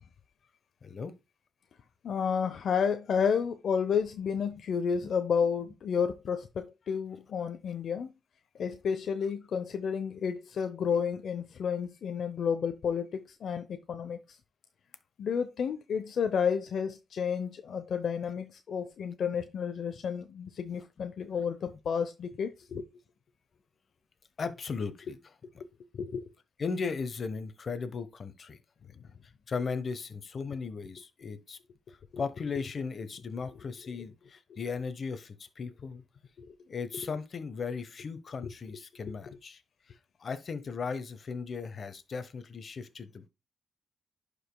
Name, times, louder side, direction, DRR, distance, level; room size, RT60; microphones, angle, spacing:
voice 1, 0.8-1.1 4.5-4.6 5.0-5.1 21.0-21.1 24.4-25.2 25.5-25.6 26.6-28.6 29.5-31.6 31.9-36.0 36.7-39.6 39.9-43.3, left 5 dB, 45° left, 1.1 m, -37 dB
voice 2, 2.0-8.1 8.6-14.2 15.2-22.9 25.9-26.3 32.1-32.2 36.4-36.6, left 6 dB, 60° left, 0.7 m, -31 dB
11.0 x 5.0 x 2.2 m
cardioid pair, 105°, 0 cm